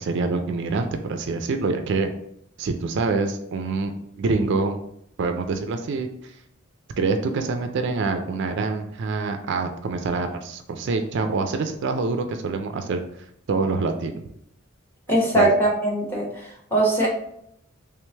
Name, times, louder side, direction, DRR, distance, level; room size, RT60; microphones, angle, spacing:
voice 1, 0.0-2.1 2.6-3.9 4.2-4.8 5.2-6.4 7.0-13.0 13.5-14.2 15.3-15.5, right 3 dB, 55° right, 6 dB, 0.3 m, -25 dB
voice 2, 15.1-16.2 16.7-17.1, right 1 dB, 10° left, -3 dB, 0.9 m, -20 dB
3.4 x 3.1 x 3.3 m, 0.73 s
head